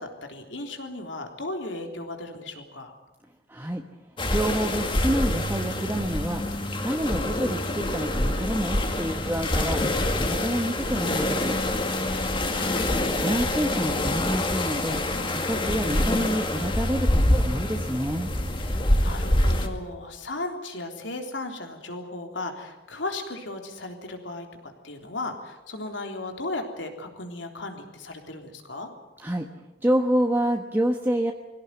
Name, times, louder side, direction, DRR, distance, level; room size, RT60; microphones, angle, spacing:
voice 1, 0.0-2.9 18.6-28.9, left 2 dB, 85° left, 4 dB, 3.7 m, -36 dB
voice 2, 3.5-3.8 4.3-6.4 6.8-9.8 10.2-11.6 13.2-15.0 15.3-18.3 29.2-29.5 29.8-31.3, equal, 10° right, 2 dB, 1.3 m, -27 dB
sound 1, 4.2-19.7, left 1 dB, 25° left, 2.2 m, -26 dB
22.5 x 17.0 x 9.7 m, 1.0 s
head